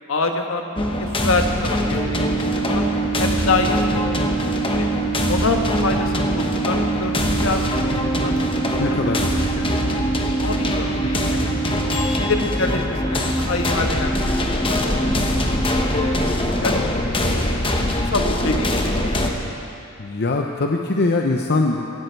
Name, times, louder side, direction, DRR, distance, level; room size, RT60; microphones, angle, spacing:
voice 1, 0.1-2.2 2.5-2.8 3.2-4.1 4.7-4.9 5.3-8.5 8.8-9.2 9.6-10.0 10.4-11.6 12.0-14.8 15.1-15.4 15.9-16.3 16.6-16.8 17.2-17.6 18.1-19.6, left 3 dB, 70° left, 4 dB, 1.3 m, -26 dB
sound 1, 0.8-19.3, left 1 dB, 25° left, 1.2 m, -22 dB
Microwave oven, 1.8-15.3, right 7 dB, 90° left, 3.8 m, -28 dB
voice 2, 8.8-9.3 10.9-11.1 20.0-22.0, left 3 dB, 50° left, 2 dB, 0.7 m, -22 dB
16.0 x 15.5 x 4.6 m, 2.7 s
head